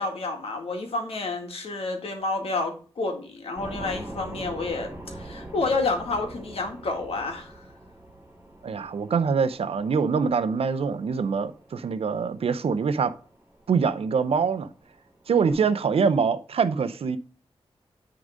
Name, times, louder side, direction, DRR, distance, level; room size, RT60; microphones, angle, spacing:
voice 1, 0.0-7.6, left 3 dB, 75° left, 2.0 m, -29 dB
sound 1, 3.6-15.5, right 1 dB, 20° right, 2.9 m, -44 dB
voice 2, 8.6-13.1 13.7-14.7 15.3-17.2, right 5 dB, 80° right, 0.6 m, -24 dB
9.6 x 3.9 x 5.1 m
wide cardioid pair, 150°, 10 cm